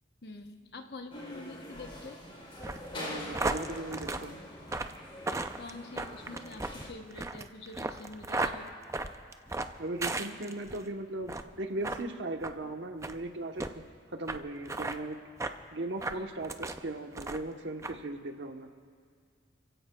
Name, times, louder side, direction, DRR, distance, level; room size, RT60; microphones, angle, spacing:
voice 1, 0.2-2.2 5.6-8.7 16.1-16.3, left 2 dB, 60° left, 5 dB, 1.0 m, -46 dB
sound 1, 1.1-6.9, left 1 dB, 30° left, 3.3 m, -44 dB
sound 2, 2.6-10.8 11.2-11.5 11.8-12.0 12.4-12.6 13.0-13.2 13.6-13.7 14.3-14.4 14.7-15.0 15.4-15.6 16.0-16.8 17.1-17.5 17.8-18.0, right 2 dB, 15° right, 0.4 m, -35 dB
voice 2, 2.9-4.4 9.8-13.8 14.1-15.2 15.7-18.7, right 2 dB, 75° right, 5 dB, 1.0 m, -38 dB
30.0 x 16.0 x 2.3 m, 2.1 s
head